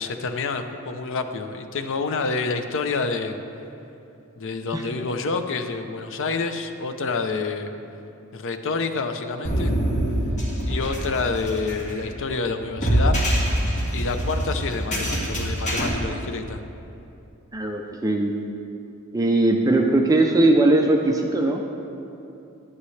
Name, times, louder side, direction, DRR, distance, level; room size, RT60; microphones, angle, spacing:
voice 1, 0.0-3.4 4.4-7.7 8.3-9.7 10.7-13.2 13.9-16.6, left 4 dB, 60° left, 7 dB, 0.6 m, -28 dB
sound 1, 9.4-15.9, right 1 dB, 35° left, 1.8 m, -25 dB
voice 2, 17.5-18.3 19.1-21.8, right 2 dB, 15° right, 2 dB, 0.5 m, -20 dB
11.0 x 11.0 x 3.3 m, 2.8 s
head